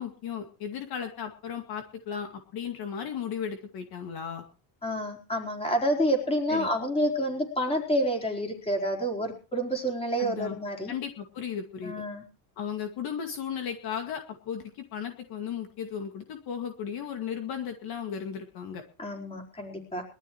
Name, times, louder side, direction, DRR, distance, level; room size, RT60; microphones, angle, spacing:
voice 1, 0.0-4.4 6.5-6.7 10.2-10.6 10.9-12.0 12.6-18.8, left 7 dB, 50° left, 4 dB, 2.2 m, -35 dB
voice 2, 4.8-10.9 11.8-12.2 19.0-20.0, equal, 10° left, 1 dB, 4.4 m, -28 dB
22.5 x 13.5 x 3.1 m, 0.36 s
cardioid pair, 160°, 48 cm